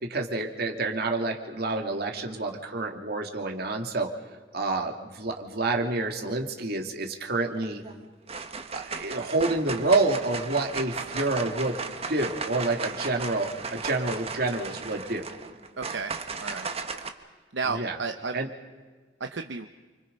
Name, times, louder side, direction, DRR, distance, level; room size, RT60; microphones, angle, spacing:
voice 1, 0.0-4.1 4.5-7.8 8.7-11.8 12.1-15.3 17.6-18.0 18.3-18.5, right 2 dB, 60° right, 3 dB, 2.7 m, -28 dB
sound 1, 7.6-7.9 8.3-17.1, right 4 dB, 35° right, 1.5 m, -36 dB
voice 2, 15.8-16.1 16.4-16.7 17.5-18.4 19.2-19.7, right 4 dB, 85° right, 6 dB, 0.9 m, -32 dB
29.5 x 25.5 x 5.4 m, 1.4 s
head